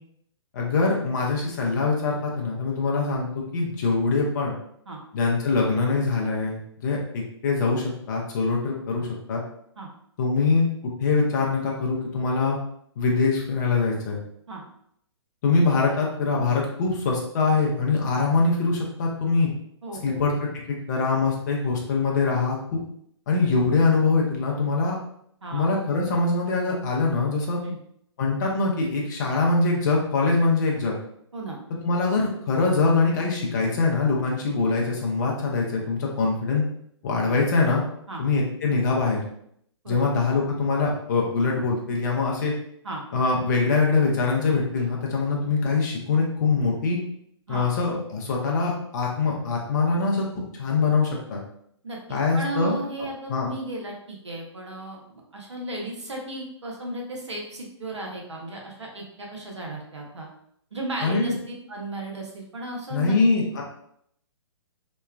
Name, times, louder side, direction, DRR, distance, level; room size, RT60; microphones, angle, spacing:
voice 1, 0.5-4.5 5.1-9.4 10.2-10.7 11.0-12.6 13.0-14.2 15.4-19.5 20.0-22.8 23.3-25.0 25.5-27.6 28.2-31.0 31.8-36.6 37.0-37.8 38.2-39.2 39.9-42.5 43.1-47.0 47.5-50.2 50.5-51.4 52.1-52.8 53.3-53.5 61.0-61.3 62.9-63.6, left 4 dB, 40° left, -2 dB, 0.6 m, -23 dB
voice 2, 19.8-20.2 25.4-25.7 27.6-27.8 31.3-31.6 37.2-37.3 38.1-38.2 39.8-40.1 42.8-43.0 47.5-47.7 51.8-60.3 60.7-61.3 61.7-63.1, right 2 dB, 75° right, -1 dB, 0.8 m, -35 dB
3.1 x 2.1 x 2.2 m, 0.70 s
figure-of-eight pair, 125°, 15 cm